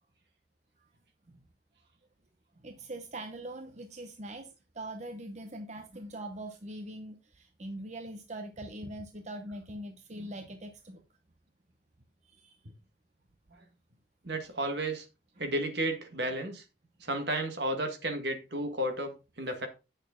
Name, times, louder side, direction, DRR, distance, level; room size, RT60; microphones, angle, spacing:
voice 1, 2.6-11.0 12.3-12.5, right 1 dB, 40° right, 0.9 m, -42 dB
voice 2, 14.2-15.0 15.4-16.6 17.0-19.7, right 1 dB, 70° right, 1.7 m, -32 dB
8.6 x 6.5 x 3.7 m
head